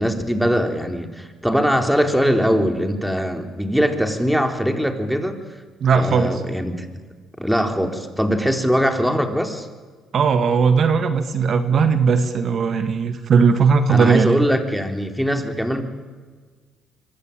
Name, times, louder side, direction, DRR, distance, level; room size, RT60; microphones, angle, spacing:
voice 1, 0.0-5.4 6.0-7.0 7.4-9.7 13.9-15.8, equal, ahead, 5 dB, 4.1 m, -21 dB
voice 2, 5.8-6.4 10.1-14.5, right 5 dB, 55° right, 9 dB, 1.9 m, -18 dB
25.5 x 24.0 x 9.1 m, 1.4 s
supercardioid pair, 65°, 0 cm